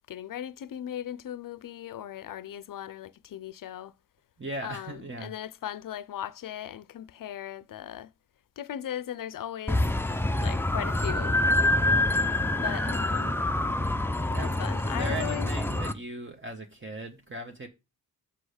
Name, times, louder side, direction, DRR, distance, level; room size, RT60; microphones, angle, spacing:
voice 1, 0.1-3.9 4.6-8.1 8.6-9.9 10.4-11.4 12.6-13.4 14.4-15.5, left 11 dB, 60° left, 0.6 m, -38 dB
voice 2, 4.4-5.3 14.3-17.7, right 2 dB, 30° right, 1.2 m, -38 dB
sound 1, 9.7-15.9, left 1 dB, 5° left, 0.6 m, -26 dB
6.3 x 5.7 x 5.0 m
cardioid pair, 65°, 38 cm